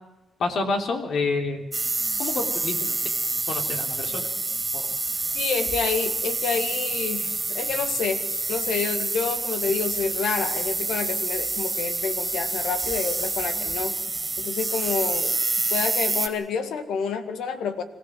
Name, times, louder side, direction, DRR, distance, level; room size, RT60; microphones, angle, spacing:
voice 1, 0.4-1.6 2.2-3.1 3.5-4.3 4.7-4.9, left 3 dB, 70° left, 5 dB, 3.4 m, -28 dB
sound 1, 1.7-16.3, right 3 dB, 20° right, 2.7 m, -27 dB
voice 2, 5.3-14.0 14.4-15.3 15.7-17.8, left 6 dB, 90° left, 9 dB, 2.0 m, -28 dB
25.0 x 16.0 x 7.6 m, 1.0 s
cardioid pair, 100°, 0 cm